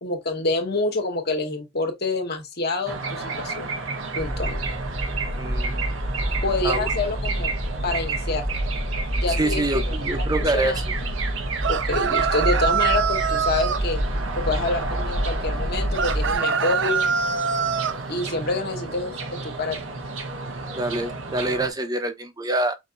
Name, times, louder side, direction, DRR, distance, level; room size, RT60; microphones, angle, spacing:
voice 1, 0.0-3.7 4.1-4.6 6.4-7.5 7.8-8.5 9.2-10.8 11.7-14.0 14.4-17.1 18.1-19.2 19.4-19.8, left 3 dB, 55° left, 1.6 m, -27 dB
sound 1, 2.9-21.7, right 4 dB, 90° right, 1.2 m, -32 dB
sound 2, 4.2-16.3, equal, 5° left, 0.5 m, -28 dB
voice 2, 5.4-5.9 6.6-6.9 9.3-10.9 20.7-22.8, right 2 dB, 20° right, 0.9 m, -26 dB
sound 3, 11.6-13.8 15.9-18.0, right 6 dB, 65° right, 0.5 m, -24 dB
5.8 x 2.8 x 2.6 m
head